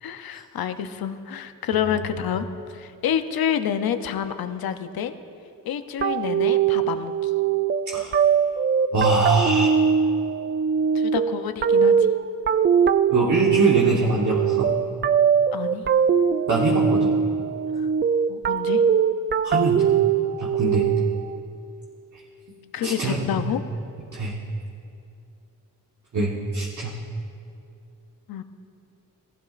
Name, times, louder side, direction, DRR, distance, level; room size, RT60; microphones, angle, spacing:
voice 1, 0.0-5.1 5.7-7.3 10.9-12.1 15.5-15.8 17.8-17.9 18.3-18.8 22.7-23.6 28.3-28.4, left 9 dB, 80° left, 9 dB, 0.7 m, -28 dB
sound 1, 6.0-21.4, right 7 dB, 30° right, 0.4 m, -21 dB
voice 2, 8.9-9.7 13.1-14.7 16.5-17.1 19.4-19.8 20.4-20.9 22.8-23.5 24.1-24.3 26.1-26.9, right 2 dB, 50° right, -4 dB, 1.4 m, -23 dB
15.0 x 14.0 x 2.5 m, 2.6 s
cardioid pair, 65°, 36 cm